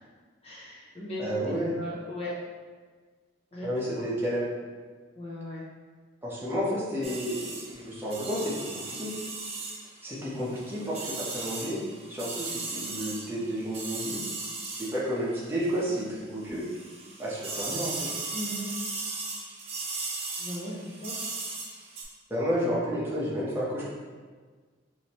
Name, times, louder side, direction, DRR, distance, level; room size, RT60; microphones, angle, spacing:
voice 1, 0.4-1.2 1.7-2.3 3.5-3.7 5.2-5.6 18.3-18.7 20.4-21.2, left 1 dB, 30° left, -7 dB, 0.7 m, -37 dB
voice 2, 1.2-1.7 3.6-4.4 6.2-9.1 10.0-11.8 12.1-14.2 14.6-16.6 17.2-18.1 22.3-23.8, equal, 10° right, -8 dB, 0.9 m, -31 dB
sound 1, 7.0-16.1 16.4-22.0, right 3 dB, 30° right, 0.5 m, -37 dB
4.9 x 2.8 x 3.0 m, 1.5 s
head